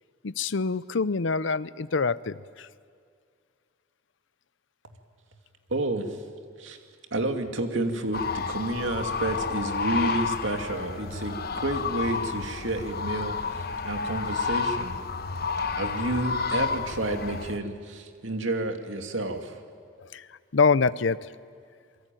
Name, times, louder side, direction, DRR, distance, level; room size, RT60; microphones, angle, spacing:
voice 1, 0.2-2.7 20.0-21.3, left 4 dB, 70° left, 17 dB, 0.6 m, -26 dB
voice 2, 5.7-6.2 6.6-6.8 7.1-14.9 15.7-19.6, right 2 dB, 75° right, 5 dB, 2.4 m, -30 dB
sound 1, 8.1-17.6, left 5 dB, 50° left, 1.1 m, -30 dB
27.5 x 23.5 x 9.1 m, 2.2 s
head